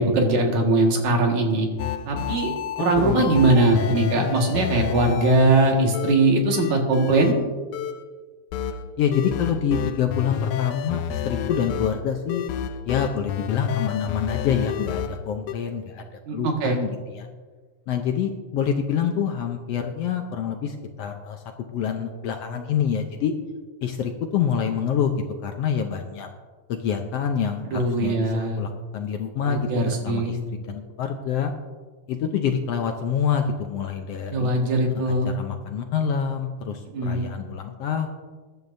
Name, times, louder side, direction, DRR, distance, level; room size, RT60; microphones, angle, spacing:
voice 1, 0.0-1.7 2.1-2.5 2.8-7.4 16.3-16.8 27.6-28.6 29.4-30.4 34.3-35.3 36.9-37.2, right 2 dB, 75° right, 1 dB, 3.2 m, -21 dB
sound 1, 1.8-6.2 6.5-7.5 7.7-8.0 8.5-15.5, left 9 dB, 90° left, 2.1 m, -30 dB
voice 2, 3.0-3.3 9.0-12.4 12.8-16.0 16.3-17.3 17.9-23.3 23.8-25.1 25.4-26.3 26.7-31.5 32.1-34.5 35.0-38.1, left 7 dB, 70° left, 4 dB, 1.6 m, -26 dB
21.5 x 11.0 x 2.7 m, 1.4 s
omnidirectional pair, 3.4 m